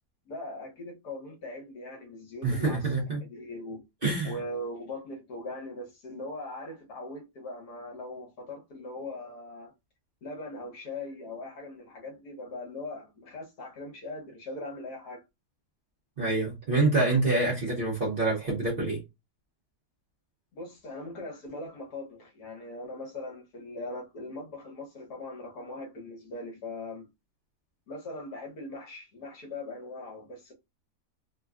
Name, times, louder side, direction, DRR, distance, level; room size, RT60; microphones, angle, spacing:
voice 1, 0.3-3.8 4.2-9.7 10.2-15.2 20.5-27.1 27.9-30.5, left 2 dB, 70° left, 1.5 m, -40 dB
voice 2, 2.4-3.2 4.0-4.3 16.2-19.0, right 3 dB, 45° right, 0.8 m, -26 dB
3.6 x 2.2 x 2.4 m
omnidirectional pair, 1.8 m